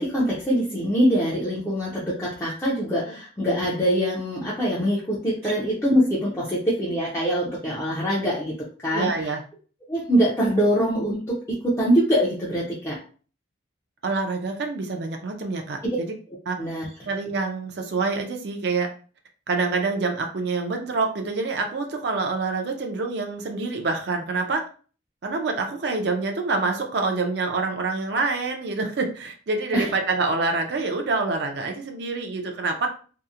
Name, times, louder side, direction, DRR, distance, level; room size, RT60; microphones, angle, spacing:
voice 1, 0.0-8.5 8.8-9.3 9.9-11.4 11.6-13.0 15.8-16.0 16.6-16.9 29.7-29.9, equal, 15° left, -6 dB, 0.5 m, -23 dB
voice 2, 8.9-9.4 14.0-16.1 16.5-16.6 17.1-18.9 19.5-24.6 25.2-32.9, right 3 dB, 55° right, 3 dB, 0.4 m, -26 dB
2.7 x 2.0 x 2.4 m, 0.40 s
head